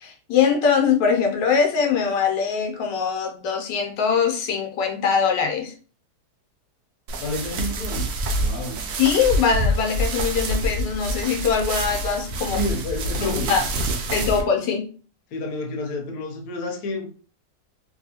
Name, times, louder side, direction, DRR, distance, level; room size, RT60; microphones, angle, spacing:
voice 1, 0.0-5.7 9.0-12.6 13.2-13.6 14.1-14.9, left 6 dB, 90° left, 1.3 m, -22 dB
sound 1, 7.1-14.4, right 1 dB, 70° right, 0.8 m, -26 dB
voice 2, 7.2-8.1 8.4-8.8 12.5-13.5 13.9-14.3 15.3-17.1, left 2 dB, 70° left, 1.2 m, -30 dB
3.0 x 2.6 x 2.8 m
omnidirectional pair, 1.8 m